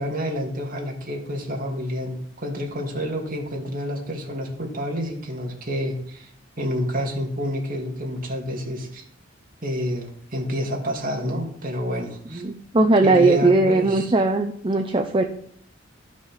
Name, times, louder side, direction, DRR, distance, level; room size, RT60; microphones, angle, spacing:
voice 1, 0.0-6.3 6.6-9.0 9.6-12.4 13.0-14.1, equal, 45° right, 1 dB, 2.4 m, -29 dB
voice 2, 12.4-15.2, right 2 dB, 25° right, 5 dB, 0.7 m, -19 dB
12.5 x 6.1 x 5.8 m, 0.62 s
head